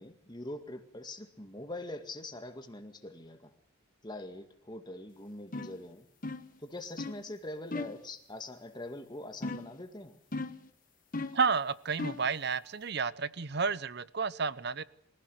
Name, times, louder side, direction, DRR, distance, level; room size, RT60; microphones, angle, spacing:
voice 1, 0.0-3.5 4.0-6.1 6.6-10.2, left 2 dB, 20° left, 7 dB, 2.0 m, -43 dB
sound 1, 5.5-5.8 6.2-6.6 7.0-7.2 7.7-8.0 9.4-9.8 10.3-10.7 11.1-11.5 12.0-12.3, left 2 dB, 40° left, 1.2 m, -37 dB
voice 2, 11.3-14.8, right 5 dB, 55° right, 17 dB, 0.8 m, -31 dB
24.0 x 16.0 x 7.9 m, 0.67 s
head